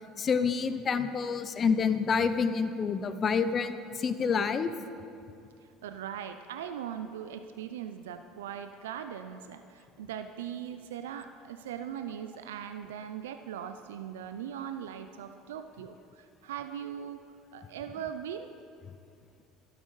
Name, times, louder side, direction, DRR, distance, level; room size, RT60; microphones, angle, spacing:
voice 1, 0.2-3.7 4.0-4.7, left 5 dB, 40° left, 11 dB, 0.6 m, -27 dB
voice 2, 5.8-17.2 17.5-18.5, right 9 dB, 90° right, 9 dB, 0.3 m, -40 dB
12.0 x 12.0 x 3.2 m, 2.5 s
hypercardioid pair, 80°, 0 cm